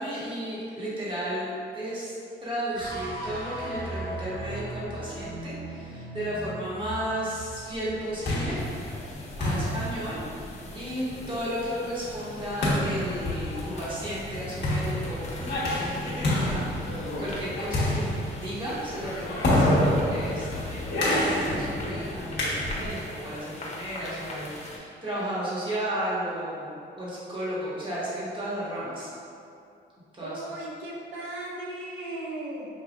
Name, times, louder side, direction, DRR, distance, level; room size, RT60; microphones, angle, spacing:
voice 1, 0.0-2.1 2.4-8.6 9.4-10.2 10.7-29.1 30.1-30.3, right 1 dB, 25° right, -9 dB, 1.5 m, -34 dB
sound 1, 2.7-9.1, right 1 dB, 50° right, 1.1 m, -38 dB
sound 2, 7.9-23.1, left 1 dB, 60° left, 1.3 m, -28 dB
sound 3, 8.6-24.8, left 1 dB, 35° left, 0.7 m, -44 dB
voice 2, 30.2-32.7, right 1 dB, 85° right, -3 dB, 0.8 m, -37 dB
5.6 x 2.6 x 2.4 m, 2.5 s
cardioid pair, 90°, 20 cm